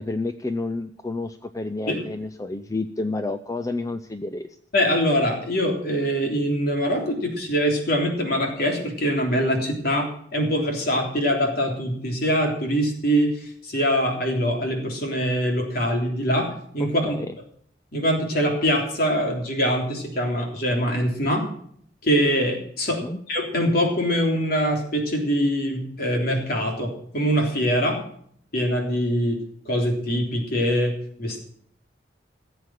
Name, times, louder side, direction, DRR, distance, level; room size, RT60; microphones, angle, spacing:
voice 1, 0.0-4.5 16.8-17.3 23.0-23.2, left 2 dB, 20° left, 9 dB, 0.5 m, -30 dB
voice 2, 4.7-17.1 17.9-21.4 22.0-23.0 23.3-28.0 28.5-31.5, equal, 55° left, 1 dB, 3.5 m, -23 dB
16.0 x 8.0 x 7.5 m, 0.65 s
head